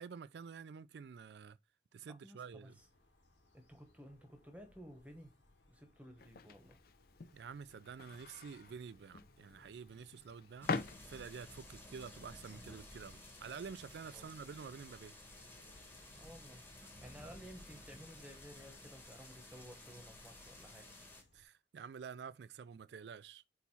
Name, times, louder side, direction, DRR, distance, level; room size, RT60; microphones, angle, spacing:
voice 1, 0.0-1.6 1.9-2.8 7.3-10.7 11.1-15.1 21.3-23.4, right 6 dB, 70° right, 0.3 m, -49 dB
voice 2, 2.1-2.9 3.5-5.3 5.7-6.8 14.1-14.3 16.1-16.6 17.0-20.9, equal, 10° right, 1.0 m, -55 dB
sound 1, 2.6-21.5, left 2 dB, 90° left, 1.8 m, -68 dB
sound 2, 6.2-11.6, left 4 dB, 55° left, 0.5 m, -45 dB
sound 3, 10.6-21.2, left 1 dB, 10° left, 1.3 m, -55 dB
4.6 x 4.1 x 5.5 m
head